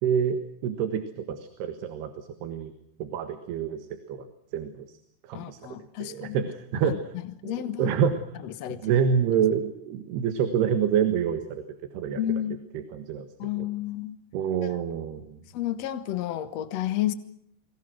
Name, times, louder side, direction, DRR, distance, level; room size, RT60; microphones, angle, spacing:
voice 1, 0.0-2.7 3.0-4.3 4.5-4.9 5.3-5.6 6.0-7.1 7.4-7.5 7.8-8.4 8.8-11.6 11.9-12.2 12.9-13.3 13.6-13.7 14.3-15.4, right 7 dB, 75° right, 9 dB, 3.5 m, -27 dB
voice 2, 5.3-6.4 7.4-7.9 8.4-8.9 12.2-12.5 13.4-14.2 14.6-14.8 15.5-17.1, left 12 dB, 75° left, 12 dB, 1.5 m, -31 dB
29.5 x 23.5 x 6.3 m, 0.70 s
omnidirectional pair, 4.8 m